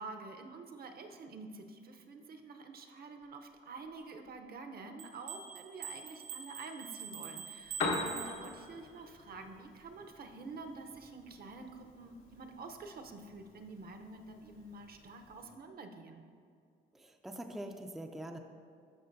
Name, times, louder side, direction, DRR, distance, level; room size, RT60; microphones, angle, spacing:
voice 1, 0.0-16.2, right 3 dB, 50° right, 5 dB, 0.7 m, -48 dB
sound 1, 5.0-9.0, right 7 dB, 85° right, 0.6 m, -46 dB
Piano, 7.5-15.6, left 3 dB, 80° left, 1.3 m, -43 dB
voice 2, 17.0-18.4, right 1 dB, ahead, 4 dB, 0.4 m, -43 dB
12.0 x 4.9 x 2.6 m, 2.3 s
cardioid pair, 90°, 20 cm